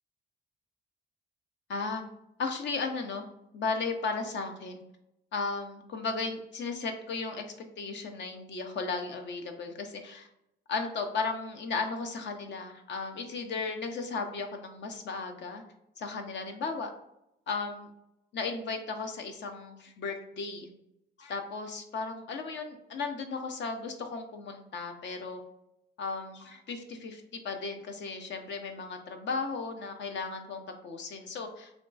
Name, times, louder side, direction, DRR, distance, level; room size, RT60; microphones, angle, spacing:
voice 1, 1.7-2.0 2.4-3.3 3.5-4.8 5.3-7.5 7.8-10.3 10.7-15.6 16.0-16.9 17.5-17.9 18.3-20.7 21.2-25.4 26.0-31.7, left 4 dB, 65° left, 5 dB, 0.6 m, -35 dB
3.6 x 2.3 x 3.8 m, 0.84 s
cardioid pair, 90°, 20 cm